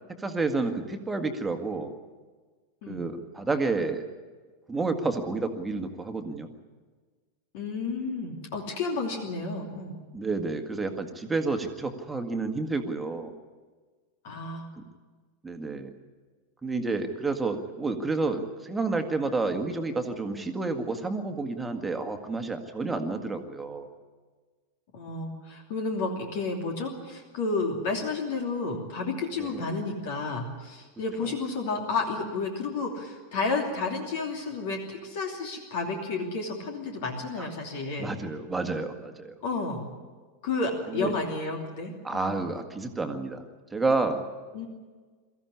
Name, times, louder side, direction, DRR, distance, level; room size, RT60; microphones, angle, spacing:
voice 1, 0.2-1.9 2.9-4.0 4.7-6.5 10.1-13.3 14.8-14.9 15.4-15.9 16.6-23.9 29.4-29.7 31.2-31.3 38.0-39.3 40.9-41.1 42.0-43.4 43.7-44.3, right 3 dB, 10° right, 6 dB, 1.9 m, -30 dB
voice 2, 7.5-10.0 14.2-14.7 24.9-38.1 39.4-39.8 40.4-42.3 44.5-44.7, left 3 dB, 50° left, 2 dB, 2.9 m, -31 dB
22.5 x 15.0 x 9.9 m, 1.4 s
figure-of-eight pair, 90°, 0 cm